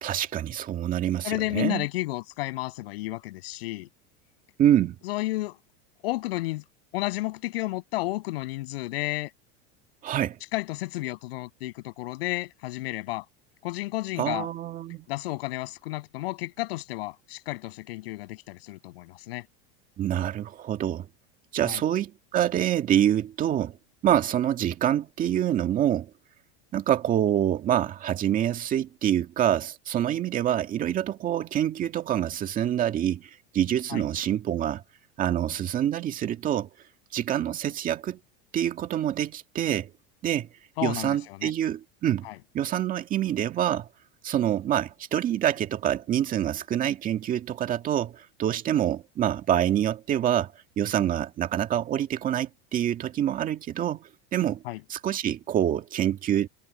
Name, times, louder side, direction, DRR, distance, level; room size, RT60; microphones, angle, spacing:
voice 1, 0.0-1.9 4.6-5.0 10.0-10.4 14.2-15.1 20.0-21.1 21.5-23.8 24.0-26.1 26.7-34.8 35.2-36.7 37.1-38.2 38.5-39.9 40.2-40.5 40.8-42.3 42.5-43.9 44.2-54.6 54.9-56.5, right 11 dB, 30° right, 2.0 m, -26 dB
voice 2, 1.2-3.9 5.0-5.6 6.0-6.6 6.9-9.3 10.5-13.2 13.6-14.5 15.1-19.5 21.7-21.8 33.9-34.0 40.8-41.5 42.3-42.4 54.7-54.8, left 19 dB, 80° left, 6.9 m, -32 dB
supercardioid pair, 160°, 29 cm